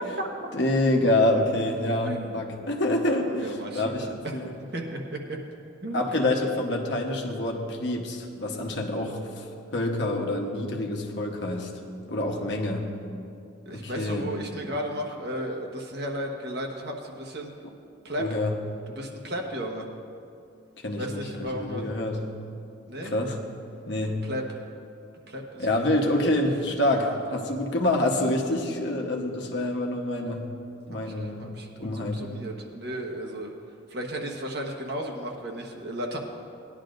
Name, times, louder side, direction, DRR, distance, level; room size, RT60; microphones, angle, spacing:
voice 1, 0.5-4.5 5.9-9.4 9.7-11.8 12.1-12.9 13.7-14.3 18.2-18.6 20.8-22.2 23.1-23.4 23.9-24.2 25.6-30.5 30.9-32.2, left 1 dB, 60° left, 1 dB, 1.1 m, -27 dB
voice 2, 2.0-2.4 3.3-4.4 4.7-5.4 5.8-6.3 13.6-17.5 18.0-18.3 18.9-19.9 21.0-21.9 22.9-23.1 24.2-24.6 25.3-26.0 26.9-27.2 30.9-33.5 33.9-36.2, equal, 55° right, 1 dB, 1.3 m, -34 dB
18.5 x 11.0 x 2.6 m, 2.6 s
head